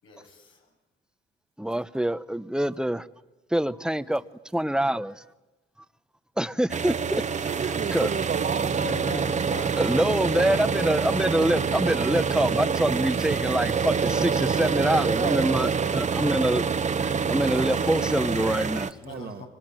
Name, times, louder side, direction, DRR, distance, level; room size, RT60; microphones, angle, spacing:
voice 1, 0.0-0.4 8.8-9.7 18.1-18.3 19.0-19.5, left 4 dB, 80° left, 7.2 m, -40 dB
voice 2, 1.6-3.1 3.5-4.2 4.5-5.2 6.4-7.5 7.9-8.1 9.8-16.7 17.0-19.0, right 1 dB, 5° right, 0.9 m, -25 dB
sound 1, 6.7-18.9, right 6 dB, 35° right, 1.2 m, -26 dB
voice 3, 7.5-9.0 15.0-15.6 19.1-19.4, right 7 dB, 55° right, 1.8 m, -32 dB
25.0 x 24.0 x 9.0 m
cardioid pair, 90°, 20 cm